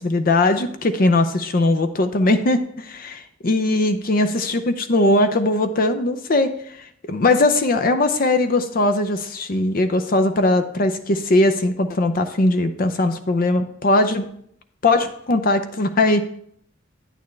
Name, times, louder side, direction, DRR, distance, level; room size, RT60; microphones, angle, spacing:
voice 1, 0.0-14.3 14.8-16.2, left 2 dB, 50° left, 8 dB, 0.6 m, -20 dB
9.4 x 9.0 x 3.2 m, 0.67 s
head